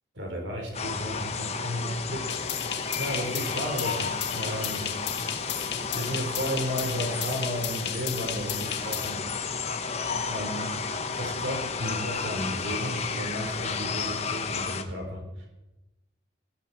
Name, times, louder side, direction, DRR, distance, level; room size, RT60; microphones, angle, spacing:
voice 1, 0.1-4.9 5.9-9.3 10.3-15.5, equal, 75° right, 1 dB, 4.5 m, -34 dB
sound 1, 0.7-14.8, left 5 dB, 35° left, 1.1 m, -32 dB
sound 2, 2.3-9.1, left 10 dB, 60° left, 1.4 m, -35 dB
17.5 x 16.0 x 4.5 m, 0.98 s
head